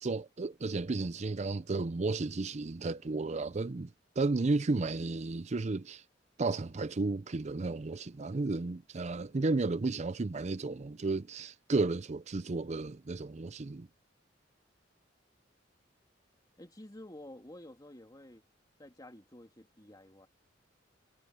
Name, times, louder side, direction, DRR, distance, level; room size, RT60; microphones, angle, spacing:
voice 1, 0.0-6.0 6.4-13.9, right 3 dB, 40° right, 0.5 m, -33 dB
voice 2, 16.6-18.4 18.8-20.3, left 1 dB, 20° left, 2.6 m, -51 dB
head